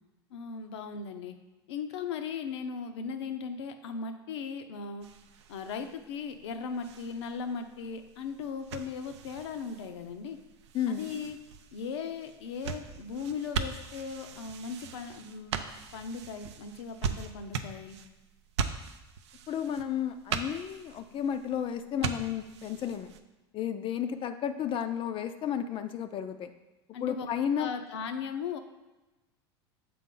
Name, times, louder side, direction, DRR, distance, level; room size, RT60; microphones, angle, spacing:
voice 1, 0.3-1.4 1.7-5.1 5.5-10.4 10.9-11.4 11.7-15.6 15.9-18.0 26.9-27.3 27.6-28.6, left 5 dB, 80° left, 7 dB, 0.6 m, -38 dB
sound 1, 5.0-23.2, right 6 dB, 85° right, 0.5 m, -40 dB
voice 2, 10.7-11.1 19.5-23.1 23.5-26.5 27.0-27.7, left 9 dB, 40° left, 9 dB, 0.4 m, -32 dB
6.8 x 4.2 x 3.8 m, 1.1 s
hypercardioid pair, 95°, 14 cm